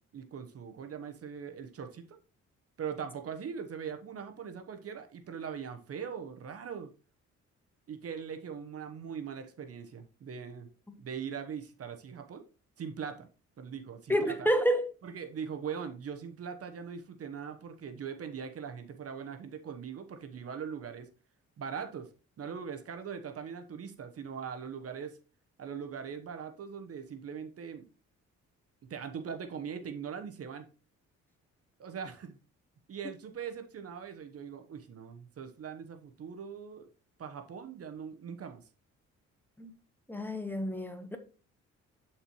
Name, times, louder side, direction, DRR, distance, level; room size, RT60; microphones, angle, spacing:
voice 1, 0.0-2.2 2.8-6.9 7.9-10.7 11.0-12.5 12.8-13.3 13.6-14.5 15.0-21.1 21.6-22.1 22.4-25.2 25.6-27.8 28.9-30.7 31.8-32.4 32.9-36.9 37.2-38.6, right 7 dB, 50° right, 1.0 m, -41 dB
voice 2, 14.1-14.9 39.6-39.7 40.1-41.2, equal, 5° left, 1.0 m, -29 dB
10.5 x 4.4 x 3.0 m
cardioid pair, 90°, 30 cm